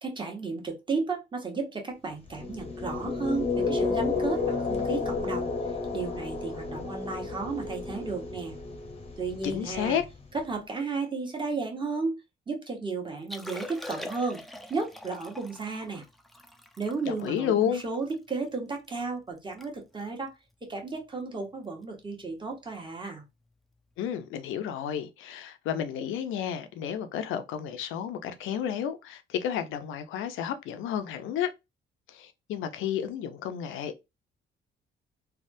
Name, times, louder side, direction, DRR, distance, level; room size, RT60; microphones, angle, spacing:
voice 1, 0.0-8.5 9.2-10.0 10.3-12.1 12.5-14.4 14.7-16.0 16.8-20.3 20.7-23.2, right 4 dB, 25° right, 1.2 m, -33 dB
sound 1, 2.3-10.4, left 4 dB, 30° left, 0.7 m, -32 dB
voice 2, 9.4-10.0 17.1-17.8 24.0-31.5 32.1-34.0, left 9 dB, 90° left, 0.6 m, -31 dB
Liquid, 13.2-18.6 19.0-19.1 19.4-19.7 19.9-20.2 20.8-21.0 22.5-22.6, left 1 dB, ahead, 0.4 m, -43 dB
3.4 x 2.3 x 2.6 m
cardioid pair, 90°, 20 cm